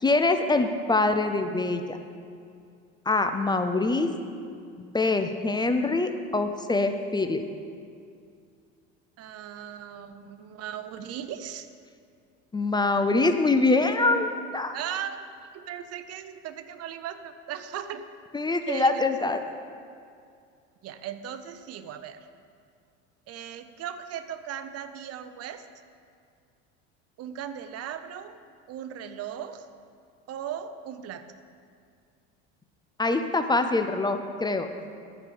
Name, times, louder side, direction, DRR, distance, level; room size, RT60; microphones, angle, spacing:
voice 1, 0.0-2.0 3.1-4.1 4.8-7.5 12.5-14.7 18.3-19.4 33.0-34.7, left 3 dB, 15° left, 7 dB, 0.5 m, -24 dB
voice 2, 9.2-11.7 14.7-15.2 15.5-18.1 18.7-19.0 20.8-22.3 23.3-25.6 27.2-28.4 28.7-29.7 30.3-31.3, right 9 dB, 50° right, 10 dB, 0.8 m, -37 dB
13.0 x 4.9 x 7.0 m, 2.3 s
supercardioid pair, 105°, 32 cm